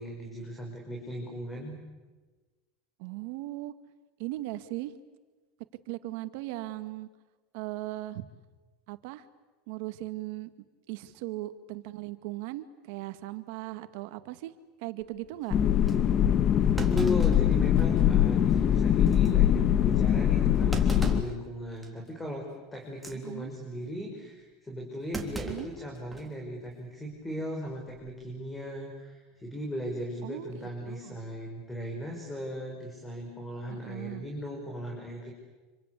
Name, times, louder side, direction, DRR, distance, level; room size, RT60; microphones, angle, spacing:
voice 1, 0.0-1.8 16.7-35.3, equal, 10° left, 1 dB, 5.7 m, -37 dB
voice 2, 3.0-3.7 4.2-4.9 5.9-7.1 7.5-8.3 8.9-9.2 9.7-10.5 10.9-14.5 14.8-15.6 23.1-23.5 25.4-25.7 30.2-31.2 33.7-34.3, right 17 dB, 65° right, 11 dB, 1.9 m, -38 dB
Thump thud, 15.0-15.3 15.9-16.0 16.8-18.1 18.5-18.6 19.1-19.3 20.7-21.4 21.8-22.1 22.9-23.2 25.1-26.3 26.7-26.8 27.9-28.2, right 3 dB, 10° right, 3.5 m, -38 dB
sound 1, 15.5-21.2, left 10 dB, 40° left, 1.3 m, -23 dB
27.5 x 25.5 x 8.4 m, 1.3 s
supercardioid pair, 120°, 0 cm